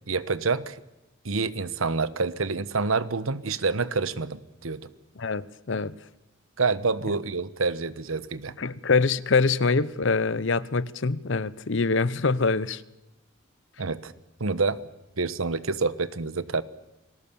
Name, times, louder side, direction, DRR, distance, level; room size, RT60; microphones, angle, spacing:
voice 1, 0.1-0.8 1.2-4.9 6.6-8.5 13.8-14.1 14.4-14.8 15.2-16.6, right 4 dB, 90° right, 1.2 m, -27 dB
voice 2, 5.2-6.0 8.6-12.8, left 4 dB, 60° left, 0.8 m, -24 dB
29.0 x 20.0 x 7.1 m
head